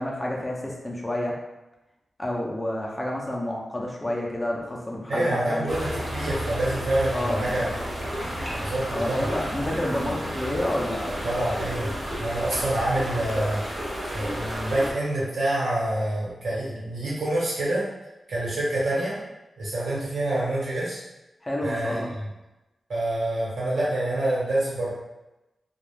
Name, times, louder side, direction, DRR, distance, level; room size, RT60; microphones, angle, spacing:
voice 1, 0.0-1.3 2.2-5.7 7.1-7.7 8.9-11.2 21.4-22.1, left 1 dB, 15° left, -2 dB, 0.5 m, -29 dB
voice 2, 5.1-7.7 8.6-9.3 11.2-11.9 12.2-13.6 14.1-17.8 18.3-19.2 19.6-21.0 21.6-22.0 22.9-24.9, right 1 dB, 85° right, -7 dB, 1.2 m, -26 dB
sound 1, 5.7-14.9, equal, 30° right, 0.8 m, -32 dB
2.4 x 2.3 x 3.2 m, 1.0 s
wide cardioid pair, 110°, 0 cm